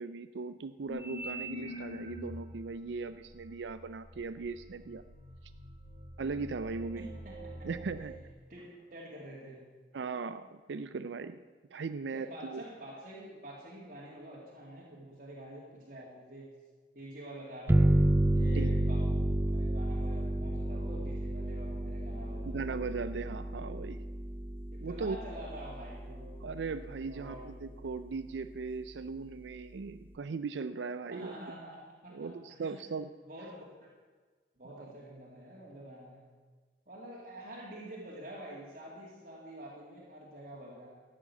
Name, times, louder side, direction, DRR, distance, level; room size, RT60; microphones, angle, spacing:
voice 1, 0.0-5.0 6.2-7.1 7.6-8.1 9.9-11.4 11.7-12.6 18.4-18.8 22.4-24.0 24.8-25.2 26.4-31.3 32.1-33.1 34.8-34.9, right 4 dB, 75° right, 11 dB, 0.4 m, -38 dB
sound 1, 0.9-2.5 3.2-8.2, equal, 30° right, 2.7 m, -44 dB
voice 2, 7.0-7.7 8.5-9.7 12.1-16.5 16.9-18.0 18.3-22.6 24.7-26.4 27.1-27.4 31.1-32.8 33.2-33.8 34.6-36.3 36.9-41.0, right 1 dB, 45° right, -5 dB, 2.3 m, -47 dB
sound 2, 17.7-27.0, right 1 dB, 10° right, 0.3 m, -31 dB
12.5 x 7.5 x 8.4 m, 1.4 s
head